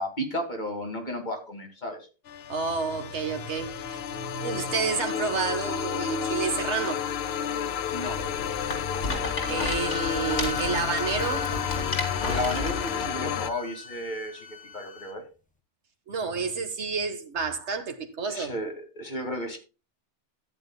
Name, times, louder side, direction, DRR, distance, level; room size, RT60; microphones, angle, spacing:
voice 1, 0.0-2.0 7.9-8.2 12.3-14.5 14.7-15.2 18.3-19.6, equal, 40° left, 2.3 m, -33 dB
sound 1, 2.3-13.5, left 8 dB, 65° left, 0.8 m, -31 dB
voice 2, 2.5-7.1 9.5-11.5 16.1-18.5, right 5 dB, 70° right, 1.6 m, -30 dB
Rattle, 8.0-13.1, left 2 dB, 80° left, 2.9 m, -33 dB
sound 2, 9.4-15.1, left 6 dB, 5° left, 1.3 m, -39 dB
13.5 x 9.2 x 2.2 m
omnidirectional pair, 1.2 m